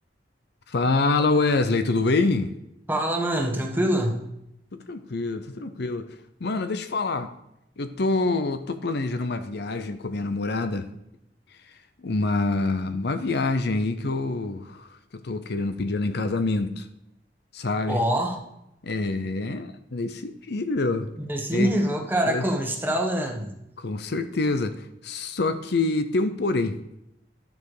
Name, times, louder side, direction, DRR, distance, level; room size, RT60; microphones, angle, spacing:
voice 1, 0.7-2.5 4.7-6.1 6.4-7.3 7.8-10.9 12.0-16.9 17.5-18.0 18.8-21.1 21.5-21.7 22.2-22.4 23.8-26.8, left 3 dB, 65° left, 10 dB, 0.7 m, -26 dB
voice 2, 2.9-4.2 17.9-18.4 21.3-23.5, right 1 dB, 10° right, 2 dB, 1.3 m, -24 dB
10.5 x 7.2 x 4.9 m, 0.82 s
head